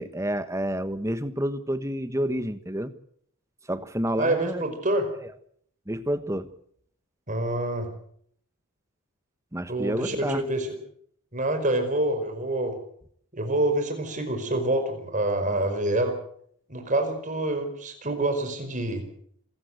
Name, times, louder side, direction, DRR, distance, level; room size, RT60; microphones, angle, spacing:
voice 1, 0.0-2.9 3.7-4.6 5.9-6.5 9.5-10.4, right 1 dB, 15° right, 11 dB, 1.3 m, -29 dB
voice 2, 4.2-5.1 7.3-7.9 9.7-10.7 11.3-12.8 13.3-16.2 16.7-19.0, right 1 dB, 35° right, 7 dB, 5.0 m, -26 dB
27.0 x 15.0 x 7.9 m, 0.65 s
head